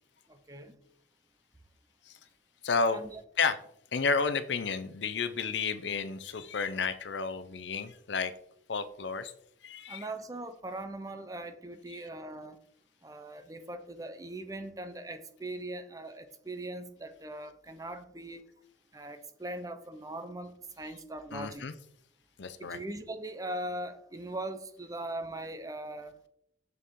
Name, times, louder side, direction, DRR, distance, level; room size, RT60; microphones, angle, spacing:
voice 1, 0.3-0.8 2.9-3.2 9.9-12.6 13.0-18.5 18.9-21.7 22.6-26.2, right 1 dB, 20° right, 9 dB, 0.6 m, -40 dB
voice 2, 2.6-3.0 3.4-3.6 3.9-8.3 8.7-9.3 9.6-10.1 11.9-12.0 21.3-21.7 22.4-22.8, left 5 dB, 75° left, 10 dB, 0.6 m, -31 dB
6.8 x 6.7 x 3.7 m, 0.72 s
head